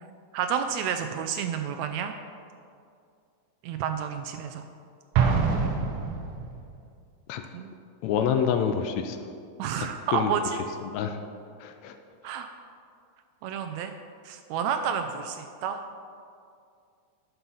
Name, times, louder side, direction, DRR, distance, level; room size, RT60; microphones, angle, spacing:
voice 1, 0.3-2.1 3.6-4.6 7.5-7.7 9.6-10.4 12.2-12.5 13.4-13.9 14.2-15.8, right 8 dB, 90° right, 7 dB, 1.5 m, -30 dB
Explosion, 5.1-6.7, right 5 dB, 70° right, 2.2 m, -25 dB
voice 2, 8.0-9.2 9.8-10.3 10.8-11.2 11.6-12.0, left 8 dB, 80° left, 7 dB, 1.6 m, -27 dB
10.0 x 5.6 x 5.5 m, 2.3 s
omnidirectional pair, 3.6 m